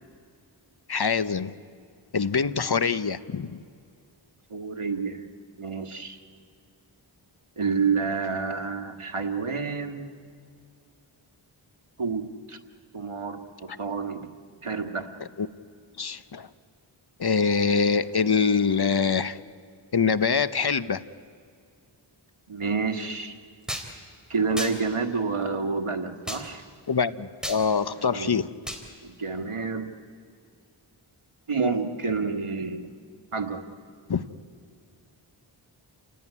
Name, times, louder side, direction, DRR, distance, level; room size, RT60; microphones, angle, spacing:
voice 1, 0.9-1.5 2.1-3.6 15.4-15.5 16.0-16.5 17.2-19.4 19.9-21.0 26.9-28.5 34.1-34.2, left 5 dB, 50° left, 14 dB, 0.9 m, -24 dB
voice 2, 4.5-5.3 5.6-6.2 7.6-10.2 12.0-12.6 12.9-14.3 14.6-15.1 22.5-23.4 24.3-26.6 27.9-28.4 29.0-29.9 31.5-32.9 33.3-33.6, right 4 dB, 90° right, 6 dB, 1.7 m, -29 dB
sound 1, 23.7-23.9 24.6-24.8 26.3-26.4 27.4-27.6 28.7-28.8, equal, ahead, 3.7 m, -32 dB
29.5 x 18.5 x 9.8 m, 2.4 s
wide cardioid pair, 45°, 49 cm